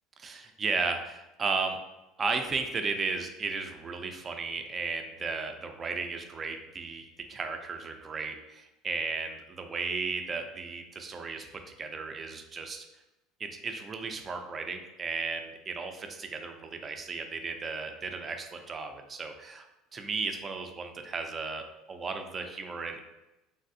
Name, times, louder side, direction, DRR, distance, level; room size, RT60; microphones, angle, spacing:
voice 1, 0.2-1.8 2.2-7.0 7.3-12.8 13.4-19.7 19.9-23.0, right 4 dB, 30° right, 5 dB, 0.4 m, -35 dB
3.3 x 2.4 x 2.6 m, 0.99 s
supercardioid pair, 115°, 0 cm